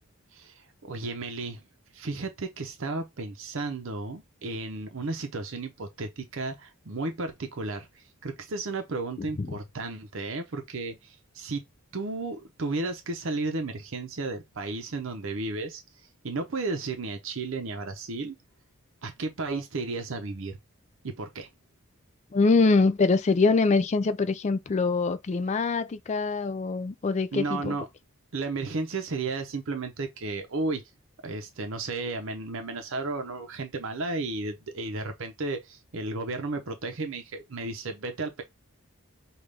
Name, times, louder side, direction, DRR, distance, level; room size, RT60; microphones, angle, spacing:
voice 1, 0.3-1.6 1.9-11.6 11.9-15.8 16.2-18.4 19.0-20.6 21.0-21.5 27.3-27.9 28.3-30.8 31.2-38.4, right 3 dB, 60° right, 0.6 m, -33 dB
voice 2, 22.3-27.8, left 3 dB, 30° left, 0.3 m, -24 dB
5.2 x 2.4 x 3.2 m
head